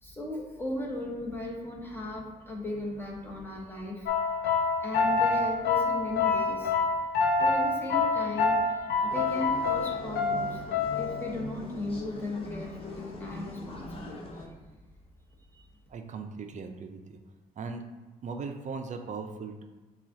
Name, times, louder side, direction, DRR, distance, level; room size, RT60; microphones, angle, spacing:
voice 1, 0.0-4.1 4.8-6.7 7.4-10.6 10.9-14.5 15.5-15.6, left 1 dB, 15° left, -2 dB, 1.2 m, -37 dB
sound 1, 4.1-11.3, left 4 dB, 80° left, 0.5 m, -27 dB
sound 2, 9.1-14.5, left 2 dB, 35° left, 0.7 m, -42 dB
voice 2, 15.9-17.2 17.6-17.8 18.2-19.6, right 4 dB, 45° right, 6 dB, 0.5 m, -38 dB
7.2 x 2.4 x 2.8 m, 1.2 s
cardioid pair, 75°, 17 cm